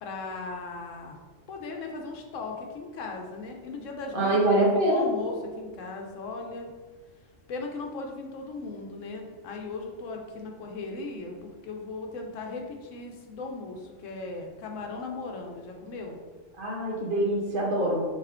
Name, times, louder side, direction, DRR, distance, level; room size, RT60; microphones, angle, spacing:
voice 1, 0.0-1.2 1.5-6.7 7.5-16.2, left 3 dB, 80° left, 2 dB, 1.0 m, -37 dB
voice 2, 4.1-5.1 16.6-18.0, right 1 dB, 45° right, -3 dB, 1.0 m, -24 dB
4.2 x 3.3 x 3.5 m, 1.4 s
omnidirectional pair, 1.3 m